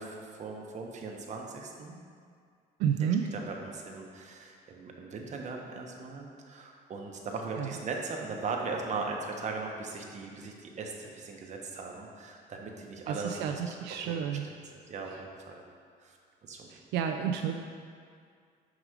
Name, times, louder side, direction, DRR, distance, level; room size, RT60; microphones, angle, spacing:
voice 1, 0.0-2.0 3.0-14.4 14.7-15.6 16.0-16.2 16.4-16.7, right 4 dB, 45° right, 1 dB, 1.0 m, -39 dB
voice 2, 2.8-3.2 7.6-7.7 13.1-14.5 16.7-17.7, right 8 dB, 85° right, 4 dB, 0.4 m, -31 dB
6.1 x 4.8 x 4.9 m, 2.2 s
cardioid pair, 110°, 17 cm